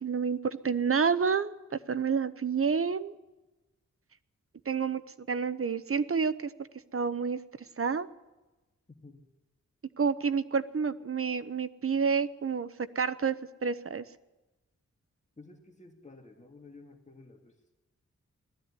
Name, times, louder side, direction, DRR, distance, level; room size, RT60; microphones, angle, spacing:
voice 1, 0.0-1.5 1.9-3.1 4.7-5.0 5.3-7.4 7.8-8.1 10.0-12.7 12.9-13.4 13.6-14.0, right 6 dB, 50° right, 13 dB, 0.9 m, -29 dB
voice 2, 15.4-17.7, left 3 dB, 25° left, 2 dB, 2.2 m, -52 dB
19.0 x 14.0 x 9.8 m, 1.1 s
wide cardioid pair, 90°, 29 cm